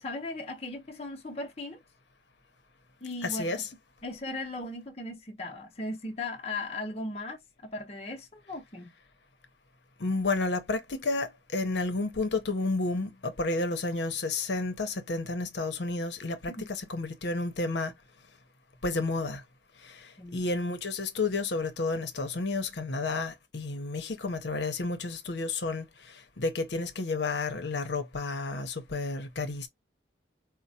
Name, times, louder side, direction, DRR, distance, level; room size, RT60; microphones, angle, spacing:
voice 1, 0.0-1.8 3.0-3.6 4.0-8.9 16.5-16.6 20.2-20.5, left 2 dB, 35° left, 0.7 m, -37 dB
voice 2, 3.2-3.7 10.0-17.9 18.8-19.4 19.9-20.0 20.3-25.9 26.4-29.7, left 3 dB, 75° left, 0.8 m, -31 dB
4.3 x 2.1 x 2.7 m
head